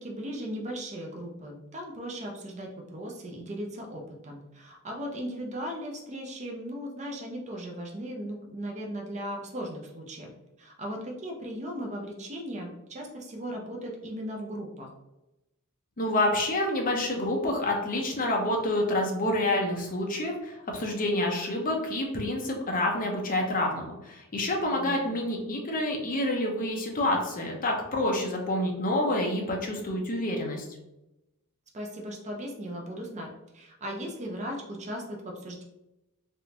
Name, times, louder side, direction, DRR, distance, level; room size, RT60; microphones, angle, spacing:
voice 1, 0.0-10.3 10.6-14.9 24.7-25.0 31.7-35.6, equal, 30° right, 0 dB, 0.5 m, -37 dB
voice 2, 16.0-30.6, left 1 dB, 40° left, 1 dB, 0.7 m, -28 dB
3.4 x 2.5 x 2.8 m, 0.94 s
head